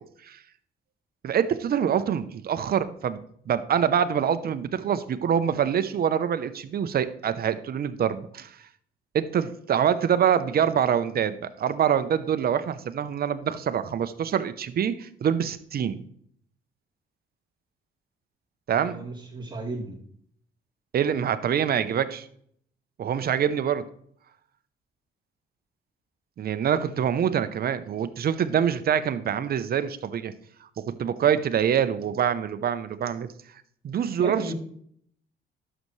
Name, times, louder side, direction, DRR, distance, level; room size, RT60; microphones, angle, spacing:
voice 1, 1.2-3.2 3.5-8.5 9.1-16.0 18.7-19.1 20.9-22.3 23.0-23.8 26.4-30.3 31.0-33.3 33.8-34.5, right 8 dB, 50° right, 12 dB, 0.7 m, -25 dB
voice 2, 18.7-20.0 34.2-34.5, right 2 dB, 25° right, -3 dB, 2.5 m, -34 dB
11.0 x 6.6 x 3.2 m, 0.64 s
cardioid pair, 90°, 20 cm